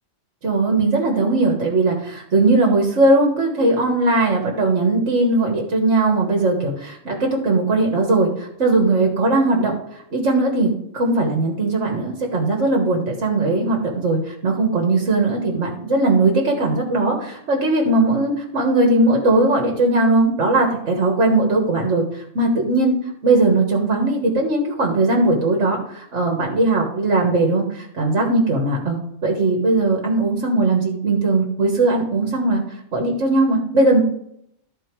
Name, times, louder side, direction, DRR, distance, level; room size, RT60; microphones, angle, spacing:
voice 1, 0.4-22.9 23.2-32.6 32.9-34.0, right 2 dB, 65° right, 1 dB, 1.8 m, -19 dB
13.0 x 4.5 x 4.6 m, 0.73 s
omnidirectional pair, 1.3 m